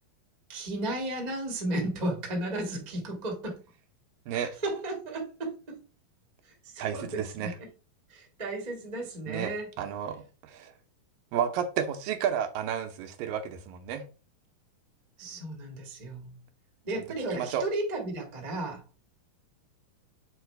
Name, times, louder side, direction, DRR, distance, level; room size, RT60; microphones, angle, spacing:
voice 1, 0.5-3.6 4.3-5.8 6.6-7.7 8.1-9.7 15.2-16.3 16.8-18.8, right 1 dB, 35° right, 0.6 m, -34 dB
voice 2, 6.8-7.5 9.3-10.7 11.3-14.0 17.3-17.6, right 8 dB, 80° right, 2.4 m, -32 dB
7.4 x 4.3 x 3.3 m
omnidirectional pair, 4.1 m